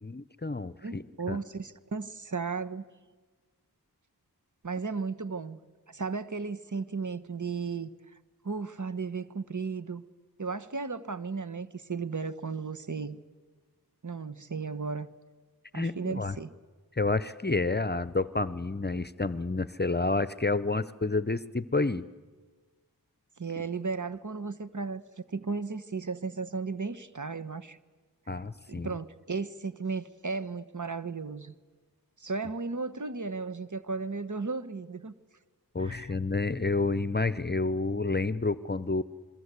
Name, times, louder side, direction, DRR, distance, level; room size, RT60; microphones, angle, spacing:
voice 1, 0.0-1.4 15.7-16.4 17.0-22.0 28.3-29.0 35.7-39.0, left 3 dB, 25° left, 16 dB, 0.8 m, -29 dB
voice 2, 0.8-2.8 4.6-5.6 5.9-7.9 8.4-10.0 10.4-13.2 14.0-15.1 15.7-16.5 23.4-27.8 28.7-31.5 32.2-35.1 35.8-36.1, right 4 dB, 50° right, 12 dB, 1.3 m, -35 dB
26.5 x 22.0 x 8.3 m, 1.4 s
wide cardioid pair, 40°, 38 cm